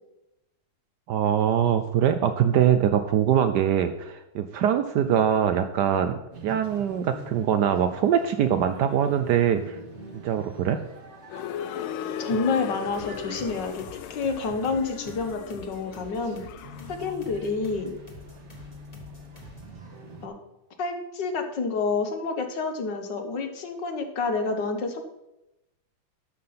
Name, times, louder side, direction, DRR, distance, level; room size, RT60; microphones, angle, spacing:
voice 1, 1.1-9.8 10.2-10.8, right 9 dB, 70° right, 9 dB, 1.0 m, -23 dB
sound 1, 6.3-20.3, right 1 dB, 40° right, 1.4 m, -45 dB
sound 2, 11.3-17.2, left 10 dB, 85° left, 1.4 m, -37 dB
voice 2, 12.2-16.5 16.9-18.0 20.2-20.3 20.8-25.0, left 4 dB, 65° left, 6 dB, 1.7 m, -29 dB
sound 3, 12.9-19.8, left 1 dB, 20° left, 1.3 m, -49 dB
12.0 x 5.9 x 5.6 m, 0.92 s
omnidirectional pair, 2.2 m